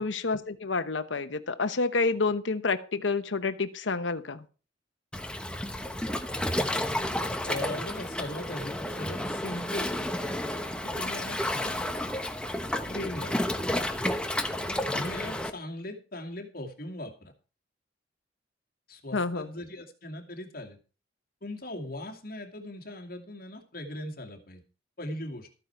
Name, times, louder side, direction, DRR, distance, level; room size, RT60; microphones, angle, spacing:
voice 1, 0.0-4.4 19.1-19.5, left 3 dB, 85° left, 11 dB, 1.0 m, -29 dB
Waves surf, 5.1-15.5, left 1 dB, 5° left, 1.0 m, -31 dB
voice 2, 7.5-10.1 10.8-11.8 12.8-13.4 14.9-17.3 18.9-20.8 21.4-24.6 25.0-25.5, left 1 dB, 55° left, 3 dB, 2.4 m, -39 dB
14.0 x 9.3 x 4.7 m, 0.35 s
head